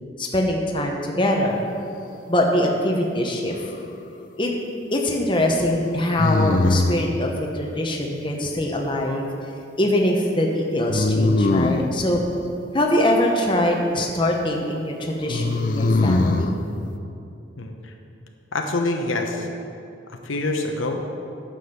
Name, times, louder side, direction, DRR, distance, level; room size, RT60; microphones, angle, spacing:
voice 1, 0.2-1.7 2.3-3.5 4.4-4.5 4.9-9.3 9.8-12.2 12.7-16.6, left 1 dB, 25° left, 1 dB, 0.9 m, -23 dB
sound 1, 3.4-4.1 6.2-7.1 10.9-11.9 15.3-16.5, left 2 dB, 40° left, 0.4 m, -21 dB
voice 2, 17.6-17.9 18.5-19.5 20.1-21.0, left 2 dB, 85° left, 3 dB, 1.0 m, -26 dB
9.8 x 7.2 x 5.9 m, 2.6 s
head